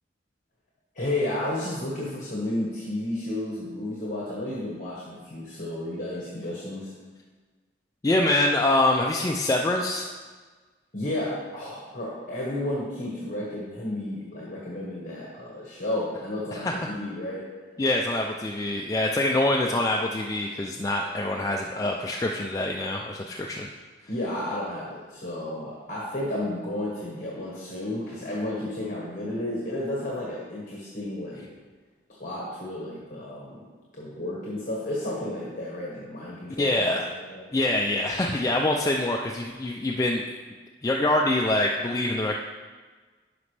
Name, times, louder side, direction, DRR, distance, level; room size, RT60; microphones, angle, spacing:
voice 1, 0.9-6.9 10.9-17.5 24.1-31.4 32.1-33.6 33.9-37.4, left 1 dB, 45° left, -5 dB, 1.3 m, -32 dB
voice 2, 8.0-10.1 16.5-16.9 17.8-23.7 36.6-37.1 37.5-40.2 40.8-42.4, left 1 dB, 20° left, 0 dB, 0.3 m, -25 dB
11.0 x 5.1 x 3.3 m, 1.4 s
head